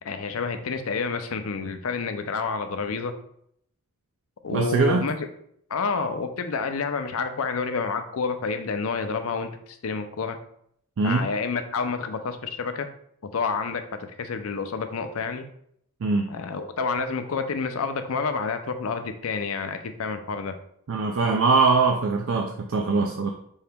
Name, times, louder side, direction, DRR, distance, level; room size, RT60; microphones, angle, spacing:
voice 1, 0.0-3.2 4.4-5.3 5.7-10.4 11.0-12.9 13.3-15.5 16.3-20.6, left 5 dB, 70° left, 8 dB, 0.5 m, -29 dB
voice 2, 4.5-5.0 11.0-11.3 16.0-16.3 20.9-23.3, right 4 dB, 65° right, 3 dB, 0.4 m, -22 dB
5.4 x 2.9 x 3.5 m, 0.69 s
head